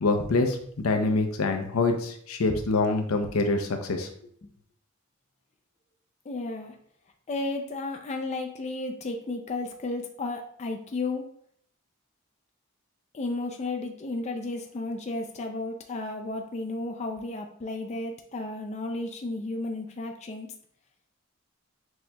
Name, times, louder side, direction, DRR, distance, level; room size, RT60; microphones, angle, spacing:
voice 1, 0.0-4.1, left 3 dB, 85° left, 5 dB, 0.6 m, -25 dB
voice 2, 6.3-6.7 7.3-11.2 13.1-20.5, left 2 dB, 30° left, 4 dB, 0.3 m, -33 dB
6.2 x 2.8 x 2.2 m, 0.64 s
head